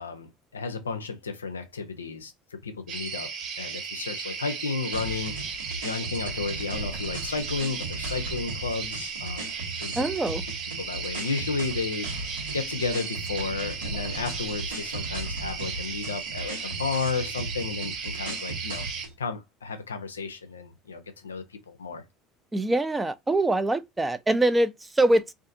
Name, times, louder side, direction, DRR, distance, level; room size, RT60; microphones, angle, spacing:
voice 1, 0.0-3.3 3.6-9.5 9.8-9.9 10.8-12.3 12.5-18.8 19.2-22.0, left 4 dB, 85° left, 0.4 m, -33 dB
sound 1, 2.9-19.1, right 6 dB, 50° right, 0.7 m, -35 dB
sound 2, 4.9-19.2, right 2 dB, 90° right, 1.1 m, -37 dB
voice 2, 10.0-10.4 22.5-25.3, right 2 dB, 15° right, 0.4 m, -24 dB
2.5 x 2.5 x 2.5 m
hypercardioid pair, 65°, 0 cm